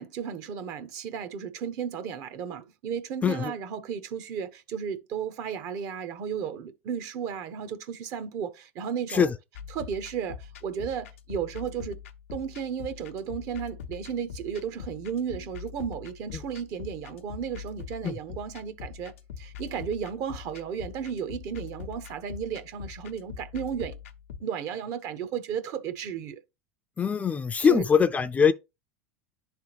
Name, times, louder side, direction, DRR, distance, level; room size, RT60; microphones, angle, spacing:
voice 1, 0.0-9.3 9.7-12.0 12.3-24.0 24.4-26.4 27.7-27.8, right 7 dB, 55° right, 0.9 m, -34 dB
voice 2, 3.2-3.5 9.1-9.3 18.0-18.2 27.0-28.5, left 6 dB, 20° left, 0.5 m, -22 dB
sound 1, 9.5-24.4, left 7 dB, 85° left, 0.7 m, -43 dB
10.5 x 3.5 x 2.9 m
hypercardioid pair, 95°, 7 cm